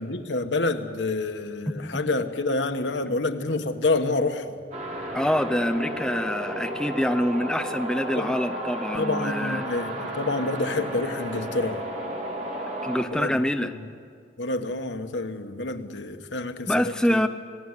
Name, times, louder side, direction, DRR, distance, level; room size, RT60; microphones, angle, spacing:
voice 1, 0.0-4.6 8.2-8.3 8.9-11.8 13.1-13.3 13.6-13.7 14.4-17.2, left 2 dB, 90° left, 1.4 m, -28 dB
voice 2, 1.7-2.0 5.1-9.6 12.8-13.7 16.7-17.3, left 1 dB, 5° left, 0.6 m, -25 dB
sound 1, 4.7-13.0, right 1 dB, 40° right, 3.6 m, -33 dB
26.0 x 17.5 x 9.8 m
head